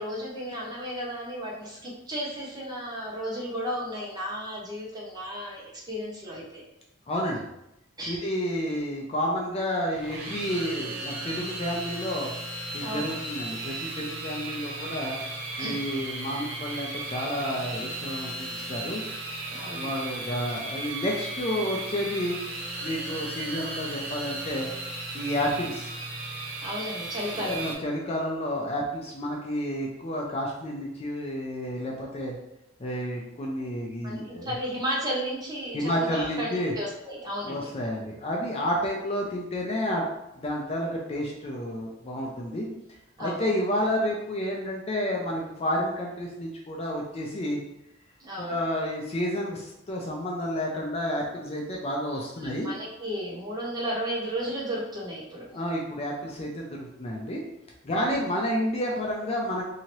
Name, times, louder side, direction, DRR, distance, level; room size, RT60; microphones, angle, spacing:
voice 1, 0.0-6.6 8.0-8.2 12.8-13.1 15.6-15.8 19.5-19.9 20.5-20.6 26.6-27.6 34.0-37.7 43.2-43.5 48.2-48.6 52.4-55.5 57.9-58.2, equal, 20° right, -4 dB, 0.8 m, -34 dB
voice 2, 7.1-7.4 8.1-12.3 12.7-15.2 15.6-19.0 19.7-22.4 22.8-24.7 25.1-26.0 27.3-32.3 32.8-34.5 35.7-36.7 37.4-40.0 40.3-42.7 43.2-47.6 48.4-52.7 55.5-57.4 57.8-59.6, equal, 30° left, -1 dB, 0.4 m, -30 dB
sound 1, 9.9-27.7, right 2 dB, 70° right, 0.8 m, -36 dB
2.8 x 2.7 x 2.9 m, 0.84 s
head